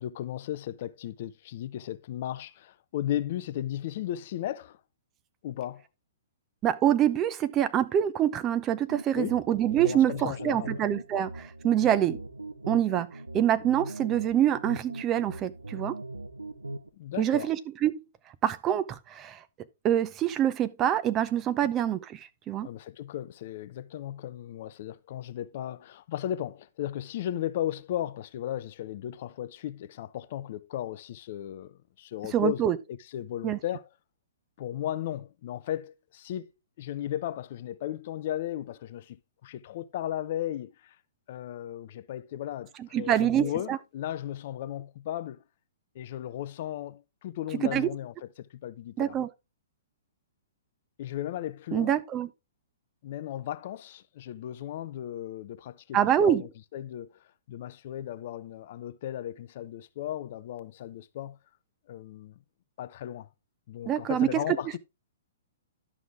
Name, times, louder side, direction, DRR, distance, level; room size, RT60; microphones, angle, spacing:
voice 1, 0.0-4.8 5.4-5.8 9.2-9.4 9.8-10.8 17.0-17.5 21.6-21.7 22.6-33.9 34.6-36.5 36.8-41.0 41.3-45.4 45.9-49.1 51.0-52.0 53.0-61.4 61.9-62.3 62.8-63.3 63.7-64.8, left 12 dB, 50° left, 0.6 m, -36 dB
voice 2, 6.6-12.2 12.7-13.1 13.3-15.9 17.2-18.0 18.4-19.4 19.8-22.7 32.3-32.8 33.4-33.6 42.9-43.8 47.6-47.9 49.0-49.3 51.7-52.3 55.9-56.4 63.9-64.4, right 10 dB, 25° right, 0.7 m, -25 dB
sound 1, 8.9-16.9, right 2 dB, 85° right, 0.9 m, -40 dB
11.5 x 6.1 x 3.6 m
figure-of-eight pair, 115°, 0 cm